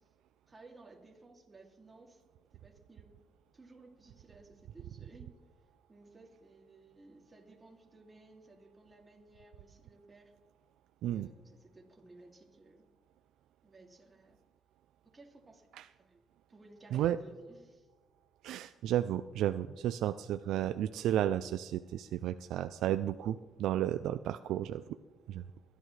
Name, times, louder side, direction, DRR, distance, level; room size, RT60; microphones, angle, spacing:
voice 1, 0.5-2.2 2.5-3.2 3.5-5.3 5.9-10.4 11.0-12.9 13.6-14.4 15.1-15.7 16.0-16.2 16.5-17.9, right 2 dB, 25° right, 0 dB, 2.6 m, -57 dB
voice 2, 18.4-24.8 25.3-25.4, right 11 dB, 85° right, 11 dB, 0.3 m, -33 dB
25.0 x 11.5 x 3.3 m, 1.3 s
cardioid pair, 90°, 0 cm